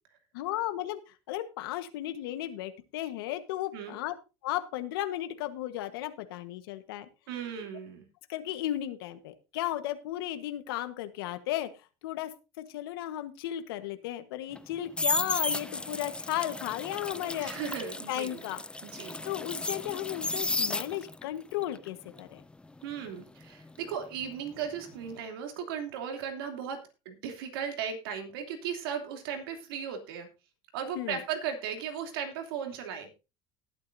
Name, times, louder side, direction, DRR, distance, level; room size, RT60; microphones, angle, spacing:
voice 1, 0.3-1.0 1.3-4.1 4.4-7.1 8.3-11.7 12.0-12.3 12.7-17.5 18.1-18.6 19.2-22.4 30.9-31.2, left 13 dB, 90° left, 9 dB, 1.3 m, -34 dB
voice 2, 7.3-8.1 17.4-18.4 18.8-19.2 22.8-26.8 27.0-30.3 30.7-33.2, right 7 dB, 90° right, 5 dB, 3.0 m, -36 dB
sound 1, 14.5-21.3 21.6-24.5 24.8-25.1, left 2 dB, 10° left, 0.5 m, -34 dB
19.0 x 8.7 x 2.7 m, 0.29 s
supercardioid pair, 105°, 12 cm